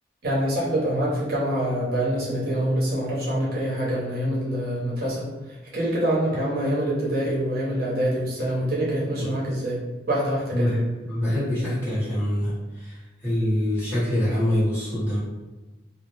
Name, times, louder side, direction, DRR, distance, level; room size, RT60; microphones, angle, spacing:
voice 1, 0.2-5.3 5.7-9.8 10.1-10.7, right 1 dB, 55° right, -6 dB, 0.7 m, -25 dB
voice 2, 10.5-15.2, equal, 15° left, -12 dB, 1.1 m, -25 dB
2.3 x 2.0 x 3.2 m, 1.1 s
head